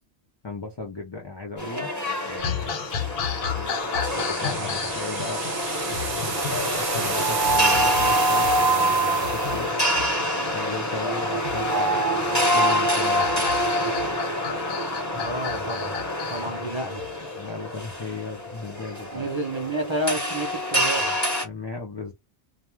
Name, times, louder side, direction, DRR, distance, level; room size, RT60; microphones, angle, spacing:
voice 1, 0.4-1.9 2.2-3.8 4.2-5.4 5.8-9.8 10.5-13.5 13.8-13.9 17.4-19.3 21.4-22.1, left 3 dB, 35° left, 0.4 m, -36 dB
sound 1, 1.6-21.4, equal, 15° left, 1.0 m, -26 dB
sound 2, 2.4-17.5, left 7 dB, 70° left, 0.8 m, -34 dB
sound 3, 4.0-9.7, right 6 dB, 80° right, 1.0 m, -32 dB
voice 2, 15.1-16.0 16.3-17.0 19.1-21.2, right 1 dB, 30° right, 0.7 m, -30 dB
2.3 x 2.2 x 3.0 m
omnidirectional pair, 1.1 m